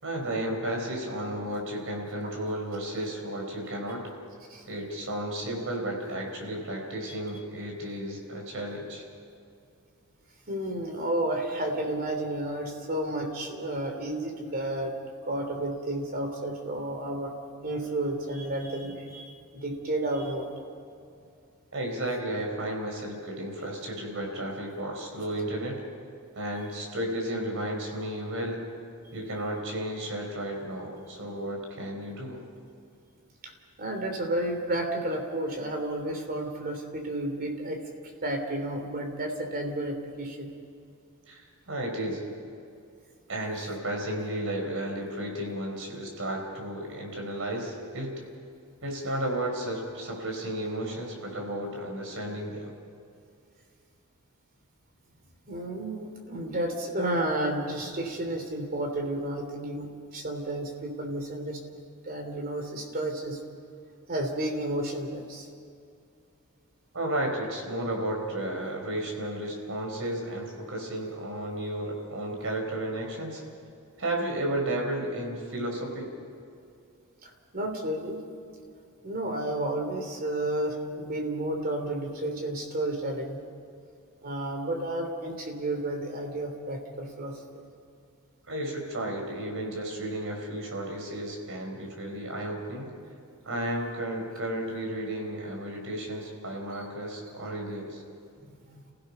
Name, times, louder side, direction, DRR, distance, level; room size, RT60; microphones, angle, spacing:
voice 1, 0.0-4.0 4.6-9.0 21.7-25.8 26.3-28.6 29.1-32.4 41.3-42.2 43.3-48.2 48.8-52.7 66.9-73.4 74.0-76.1 88.5-92.9 93.4-98.0, right 1 dB, 65° right, 1 dB, 4.8 m, -33 dB
voice 2, 10.5-14.9 15.3-17.3 17.6-20.5 33.8-37.8 38.2-40.5 55.5-61.6 62.1-63.4 64.1-65.4 77.5-78.2 79.0-83.4 84.2-87.3 98.7-98.9, right 1 dB, 45° right, 3 dB, 3.3 m, -31 dB
29.5 x 16.5 x 5.6 m, 2.5 s
head